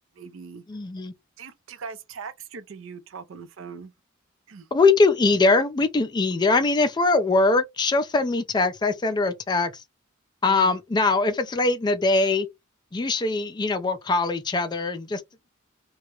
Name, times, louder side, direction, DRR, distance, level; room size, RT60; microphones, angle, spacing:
voice 1, 0.1-0.6 1.4-3.9 4.5-4.7 10.5-10.7, right 5 dB, 70° right, 0.5 m, -40 dB
voice 2, 0.7-1.1 4.7-9.8 10.4-12.5 12.9-15.2, left 3 dB, 20° left, 0.3 m, -22 dB
2.2 x 2.0 x 2.9 m
head